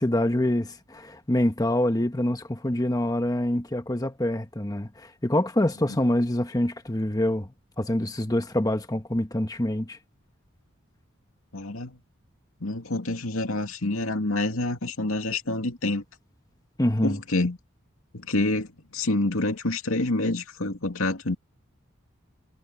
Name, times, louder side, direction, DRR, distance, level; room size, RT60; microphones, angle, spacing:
voice 1, 0.0-7.5 7.8-10.0 16.8-17.2, left 1 dB, 20° left, 1.2 m, -25 dB
voice 2, 11.5-12.0 12.6-16.0 17.0-17.6 18.1-21.3, left 2 dB, 85° left, 2.5 m, -27 dB
head